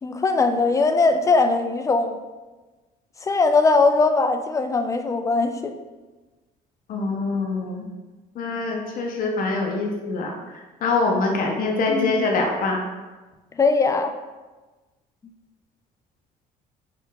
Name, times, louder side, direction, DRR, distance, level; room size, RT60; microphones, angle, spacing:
voice 1, 0.0-2.2 3.2-5.7 11.9-12.2 13.6-14.1, left 3 dB, 20° left, 7 dB, 0.3 m, -20 dB
voice 2, 6.9-7.9 8.4-10.3 10.8-12.8, left 3 dB, 55° left, 1 dB, 0.7 m, -24 dB
4.2 x 2.4 x 3.8 m, 1.2 s
cardioid pair, 110°, 17 cm